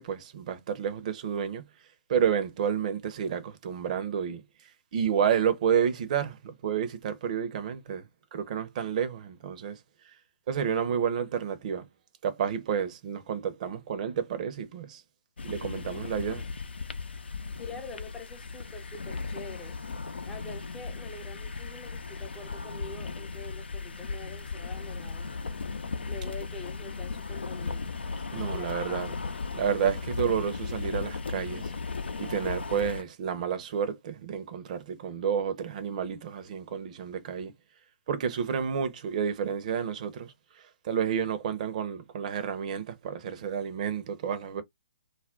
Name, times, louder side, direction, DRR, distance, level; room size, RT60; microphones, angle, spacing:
voice 1, 0.0-1.6 2.1-4.4 4.9-9.8 10.5-11.9 12.2-15.0 15.4-16.5 28.3-29.1 29.5-31.7 32.2-37.5 38.1-40.3 40.8-44.6, right 7 dB, 40° right, 0.7 m, -30 dB
sound 1, 15.4-33.0, left 4 dB, 70° left, 0.6 m, -36 dB
voice 2, 17.6-19.8 20.3-25.4 26.1-27.9 28.3-29.0, left 3 dB, 10° left, 0.5 m, -45 dB
2.4 x 2.1 x 3.6 m
figure-of-eight pair, 135°, 6 cm